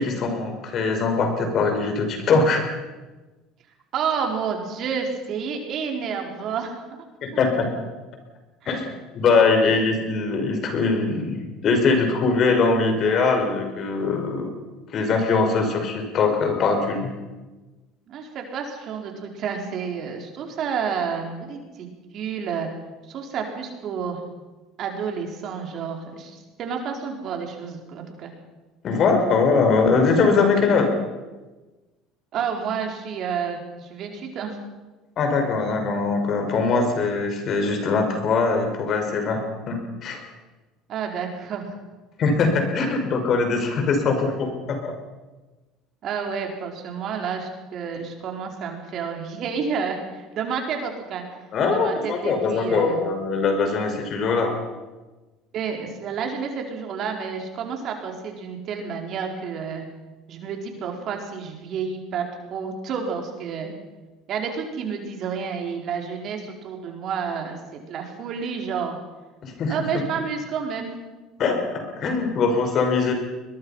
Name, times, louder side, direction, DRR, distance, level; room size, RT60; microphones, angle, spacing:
voice 1, 0.0-2.6 7.2-7.7 8.7-14.6 14.9-17.1 28.8-30.9 35.2-40.2 42.2-44.9 51.5-54.5 69.4-69.7 71.4-73.1, left 4 dB, 50° left, 5 dB, 5.3 m, -22 dB
voice 2, 3.9-6.8 8.6-8.7 18.1-22.7 23.1-24.2 24.8-28.3 32.3-34.6 40.9-41.8 46.0-51.2 51.7-53.0 55.5-59.8 60.3-62.2 62.5-63.8 64.3-69.0 69.7-71.0, right 6 dB, 55° right, 2 dB, 4.6 m, -30 dB
21.5 x 21.5 x 5.8 m, 1.2 s
supercardioid pair, 90°, 0 cm